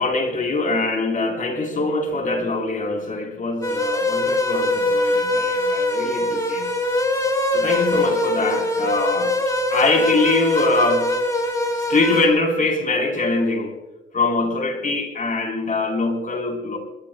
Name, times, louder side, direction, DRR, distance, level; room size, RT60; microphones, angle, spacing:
voice 1, 0.0-6.7 7.5-9.3 9.7-11.1 11.7-13.8 14.1-16.8, left 3 dB, 40° left, 3 dB, 4.3 m, -23 dB
sound 1, 3.6-12.3, left 1 dB, 15° left, 4.5 m, -22 dB
22.0 x 22.0 x 2.4 m, 1.1 s
cardioid pair, 90°, 20 cm